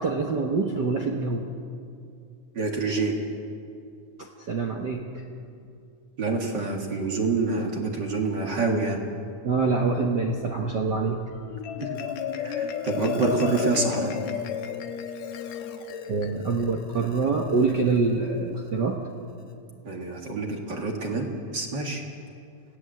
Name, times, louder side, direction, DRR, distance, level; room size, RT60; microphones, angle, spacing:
voice 1, 0.0-1.5 4.2-5.0 9.4-11.2 16.1-19.0, right 4 dB, 60° right, 2 dB, 1.1 m, -25 dB
voice 2, 2.5-3.2 6.2-9.0 11.8-11.9 12.4-14.1 19.8-22.0, right 3 dB, 40° right, 2 dB, 2.2 m, -27 dB
Marimba xylophone, 11.4-18.0, left 8 dB, 70° left, 2.3 m, -33 dB
26.0 x 17.0 x 7.7 m, 2.5 s
omnidirectional pair, 3.6 m